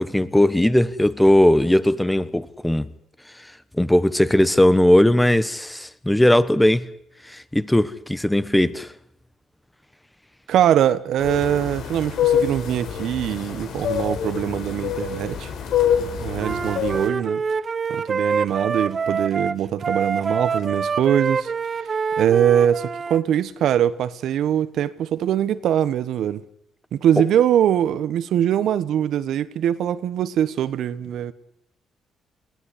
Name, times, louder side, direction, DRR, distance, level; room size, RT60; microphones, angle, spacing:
voice 1, 0.0-2.9 3.8-6.9 7.3-8.9, left 1 dB, 5° left, 1.3 m, -18 dB
voice 2, 10.5-15.5 16.2-17.4 17.9-21.5 22.2-26.4 26.9-31.3, right 10 dB, 75° right, 1.2 m, -22 dB
sound 1, 11.2-17.1, left 8 dB, 80° left, 4.4 m, -25 dB
Wind instrument woodwind instrument, 16.4-23.2, right 5 dB, 40° right, 0.9 m, -26 dB
22.0 x 16.5 x 10.0 m
cardioid pair, 90°, 0 cm